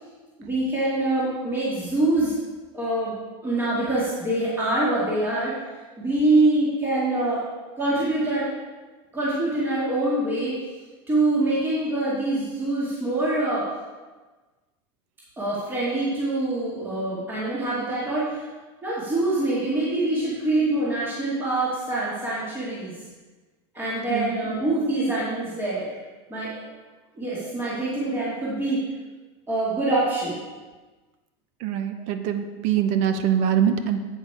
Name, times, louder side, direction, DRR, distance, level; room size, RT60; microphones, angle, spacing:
voice 1, 0.4-2.3 2.7-3.2 3.4-5.6 6.0-7.4 7.8-8.5 9.1-10.5 11.1-13.7 15.4-18.5 18.8-23.0 23.7-25.9 26.3-26.7 27.2-28.8 29.5-30.4, right 2 dB, 15° right, -8 dB, 2.1 m, -24 dB
voice 2, 31.6-34.0, right 9 dB, 50° right, 8 dB, 0.7 m, -23 dB
8.2 x 6.6 x 4.8 m, 1.3 s
supercardioid pair, 145°, 15 cm